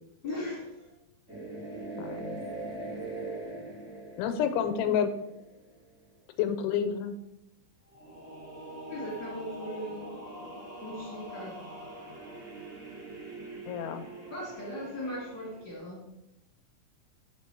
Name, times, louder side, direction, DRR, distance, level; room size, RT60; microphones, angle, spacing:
voice 1, 0.2-0.9 8.9-10.3 10.8-11.6 14.3-16.0, left 1 dB, 40° left, -6 dB, 1.9 m, -38 dB
sound 1, 1.3-5.8 7.9-15.7, right 2 dB, 5° right, 1.2 m, -42 dB
voice 2, 2.0-2.4 4.2-5.1 6.4-7.2 13.7-14.0, left 8 dB, 80° left, 8 dB, 2.7 m, -29 dB
6.5 x 5.1 x 5.9 m, 0.88 s
omnidirectional pair, 4.7 m